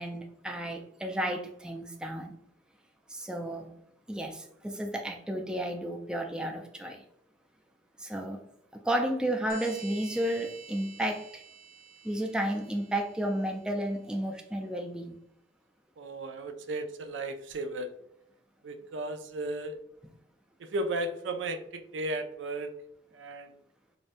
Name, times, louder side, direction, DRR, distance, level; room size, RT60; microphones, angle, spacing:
voice 1, 0.0-2.3 3.1-3.7 4.1-7.0 8.0-8.4 8.8-11.4 12.0-15.2, right 1 dB, 5° right, 2 dB, 0.3 m, -32 dB
sound 1, 9.5-13.8, right 6 dB, 55° right, 0.7 m, -50 dB
voice 2, 16.0-17.9 18.6-19.8 20.7-22.7 23.1-23.5, right 2 dB, 90° right, 7 dB, 0.4 m, -35 dB
4.8 x 2.1 x 2.5 m, 0.75 s
head